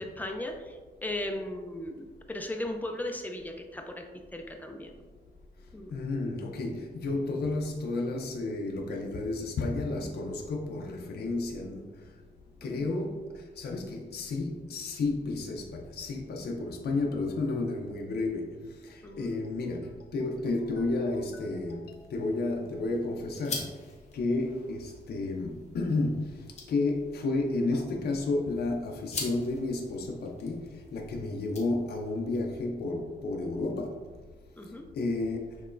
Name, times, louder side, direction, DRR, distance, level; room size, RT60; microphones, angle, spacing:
voice 1, 0.0-4.9 5.7-5.9 12.6-12.9 19.0-19.3 34.6-34.9, left 1 dB, 10° left, 0.4 m, -37 dB
voice 2, 5.9-11.9 12.6-13.3 13.6-18.5 18.8-23.7 24.1-26.3 26.7-34.0 35.0-35.5, left 2 dB, 65° left, 0.5 m, -31 dB
sound 1, 21.9-32.2, left 3 dB, 40° left, 0.8 m, -45 dB
6.6 x 3.0 x 2.5 m
wide cardioid pair, 170°, 18 cm